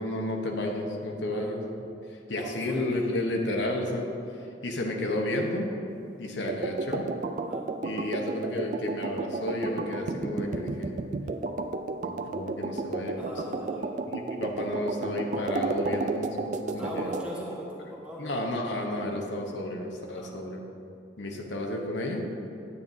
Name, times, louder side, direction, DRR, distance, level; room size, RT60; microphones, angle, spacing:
voice 1, 0.0-1.6 2.3-4.1 4.6-5.7 6.2-7.1 7.8-10.9 12.0-17.1 18.2-20.6 21.2-22.3, left 1 dB, 75° left, 1 dB, 0.9 m, -32 dB
voice 2, 2.3-2.8 7.4-7.6 13.2-13.8 16.6-18.3 20.1-20.3, equal, 5° right, -5 dB, 1.1 m, -40 dB
sound 1, 6.5-17.3, right 3 dB, 40° right, 0.3 m, -33 dB
9.7 x 9.0 x 2.7 m, 2.7 s
head